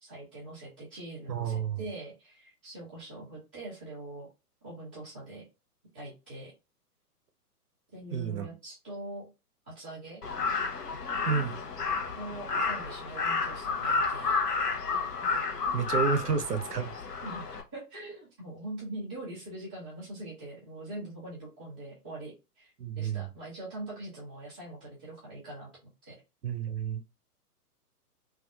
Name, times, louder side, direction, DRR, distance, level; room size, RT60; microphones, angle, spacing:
voice 1, 0.0-4.3 4.6-5.5 5.9-6.5 7.9-9.3 9.7-10.2 12.2-14.4 17.2-26.1, right 2 dB, 5° left, 0.4 m, -43 dB
voice 2, 1.3-1.8 8.1-8.5 11.3-11.6 15.7-16.9 22.8-23.3 26.4-27.0, right 6 dB, 80° right, 0.7 m, -30 dB
Crow, 10.2-17.6, left 4 dB, 80° left, 0.9 m, -31 dB
3.5 x 2.3 x 2.2 m
figure-of-eight pair, 120°, 47 cm